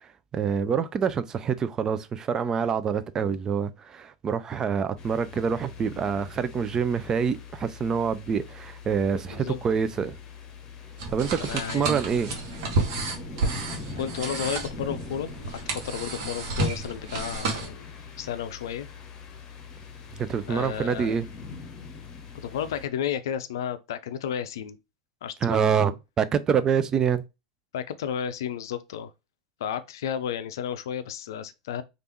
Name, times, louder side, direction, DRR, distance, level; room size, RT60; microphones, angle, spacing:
voice 1, 0.0-10.2 11.1-12.3 20.2-21.3 25.4-27.2, right 7 dB, 30° right, 0.4 m, -26 dB
sound 1, 5.0-22.9, left 5 dB, 35° left, 0.9 m, -42 dB
voice 2, 9.3-9.6 11.4-12.2 14.0-17.9 18.2-18.9 20.5-21.2 22.4-24.8 25.2-25.8 27.7-29.1 29.6-31.8, left 8 dB, 70° left, 0.4 m, -32 dB
sound 2, 11.0-17.7, right 3 dB, 60° right, 1.0 m, -31 dB
3.3 x 2.5 x 3.0 m
hypercardioid pair, 85°, 2 cm